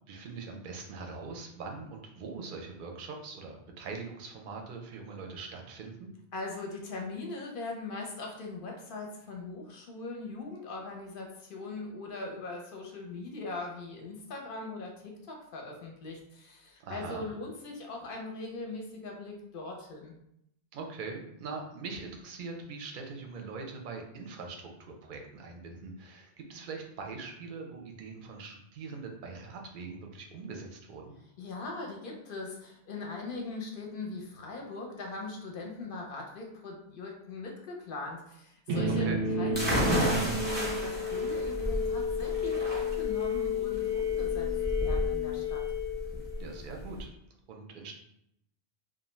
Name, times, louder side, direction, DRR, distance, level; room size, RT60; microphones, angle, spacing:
voice 1, 0.1-6.1 16.8-17.2 20.7-31.1 38.9-39.2 46.4-47.1 47.5-48.0, right 4 dB, 60° right, 2 dB, 0.6 m, -42 dB
voice 2, 6.3-20.1 31.4-39.1 39.4-44.5 44.8-45.6, left 3 dB, 60° left, 0 dB, 0.7 m, -40 dB
sound 1, 38.7-46.6, left 4 dB, 90° right, 0.9 m, -31 dB
sound 2, 39.5-47.0, equal, 15° right, 0.4 m, -32 dB
2.5 x 2.1 x 3.0 m, 0.76 s
omnidirectional pair, 1.1 m